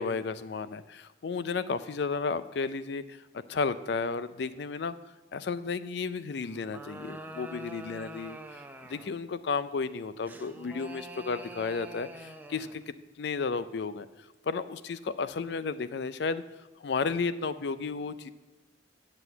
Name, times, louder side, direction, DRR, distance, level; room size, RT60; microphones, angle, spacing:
voice 1, 0.0-4.9 5.3-8.6 8.9-14.1 14.4-16.4 16.8-18.3, left 4 dB, 65° left, 14 dB, 0.4 m, -33 dB
sound 1, 6.4-9.2 10.2-12.8, right 1 dB, 10° right, 0.5 m, -45 dB
7.7 x 6.2 x 8.0 m, 1.1 s
head